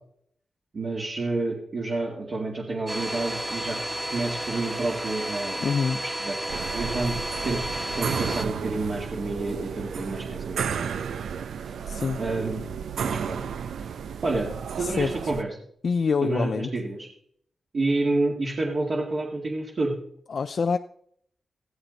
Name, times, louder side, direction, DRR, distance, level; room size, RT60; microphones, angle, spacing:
voice 1, 0.7-3.8 4.1-5.6 6.0-10.9 12.2-12.6 13.0-13.4 14.2-14.5 14.8-15.5 16.2-17.1 17.7-19.9, right 2 dB, 45° right, -2 dB, 2.1 m, -29 dB
Domestic sounds home sounds, 2.9-8.5, right 1 dB, 10° right, 1.6 m, -32 dB
voice 2, 5.6-6.0 11.9-12.2 14.8-15.1 15.8-16.7 20.3-20.8, left 5 dB, 50° left, 8 dB, 0.4 m, -25 dB
sound 1, 6.5-15.4, right 7 dB, 80° right, 0.7 m, -33 dB
15.5 x 14.0 x 4.0 m, 0.66 s
wide cardioid pair, 150°, 0 cm